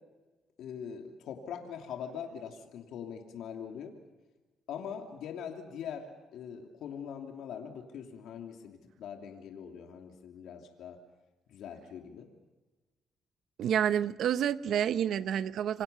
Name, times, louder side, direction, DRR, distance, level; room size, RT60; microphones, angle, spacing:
voice 1, 0.6-3.9 4.7-6.1 6.3-11.0 11.5-12.3, left 8 dB, 80° left, 3.0 m, -42 dB
voice 2, 13.6-15.8, right 9 dB, 75° right, 0.9 m, -29 dB
28.0 x 24.0 x 6.9 m
cardioid pair, 90°, 0 cm